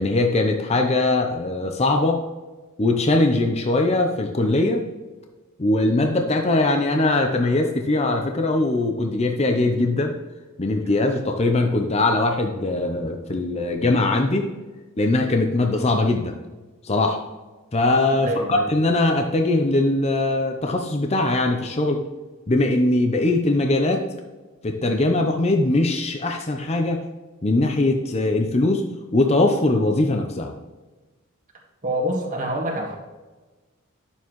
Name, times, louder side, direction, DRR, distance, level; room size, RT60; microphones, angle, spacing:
voice 1, 0.0-2.2 2.8-4.8 5.6-10.1 10.6-14.5 15.0-16.4 16.8-17.2 17.7-22.0 22.5-24.1 24.6-27.0 27.4-28.8 29.1-30.5, left 2 dB, 30° left, 3 dB, 0.7 m, -21 dB
voice 2, 18.2-18.7 31.8-32.9, equal, 35° right, 0 dB, 1.7 m, -26 dB
10.5 x 7.1 x 3.1 m, 1.2 s
head